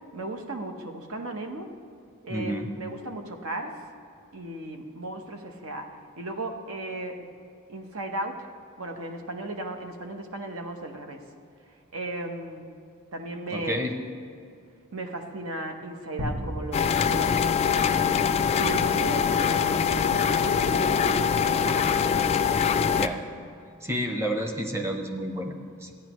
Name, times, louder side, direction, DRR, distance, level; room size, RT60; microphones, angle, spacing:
voice 1, 0.1-1.7 2.2-3.8 4.3-7.3 7.7-8.5 8.8-11.2 11.9-12.7 13.1-13.9 14.9-18.0 18.6-22.4, right 1 dB, 80° right, 5 dB, 1.0 m, -36 dB
voice 2, 2.3-2.7 13.5-13.9 22.9-23.2 23.8-25.9, equal, 15° right, 4 dB, 0.8 m, -30 dB
sound 1, 16.2-18.8, equal, 50° right, 1.4 m, -36 dB
sound 2, 16.7-23.1, left 7 dB, 30° left, 0.3 m, -23 dB
14.0 x 9.8 x 3.0 m, 2.4 s
head